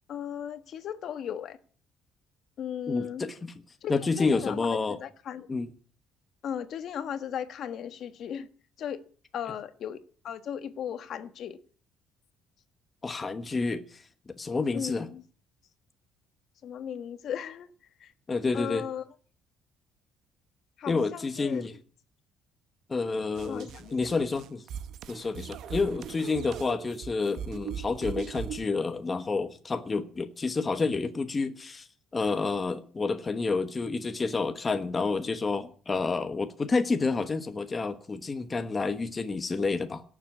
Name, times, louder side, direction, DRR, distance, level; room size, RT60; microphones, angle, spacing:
voice 1, 0.1-1.6 2.6-3.3 3.8-5.5 6.4-8.5 8.8-9.0 9.3-10.0 10.2-11.6 14.7-15.2 16.6-17.7 18.0-18.1 18.5-19.0 20.8-21.8 23.5-24.2, left 9 dB, 50° left, 1.4 m, -36 dB
voice 2, 2.9-3.5 3.9-5.0 5.5-5.7 13.0-14.0 14.4-15.1 18.3-18.8 20.9-21.7 22.9-24.6 25.1-31.9 32.1-40.0, left 4 dB, 20° left, 1.2 m, -29 dB
sound 1, 23.3-28.7, right 9 dB, 55° right, 0.9 m, -39 dB
17.5 x 7.5 x 8.6 m
cardioid pair, 160°, 0 cm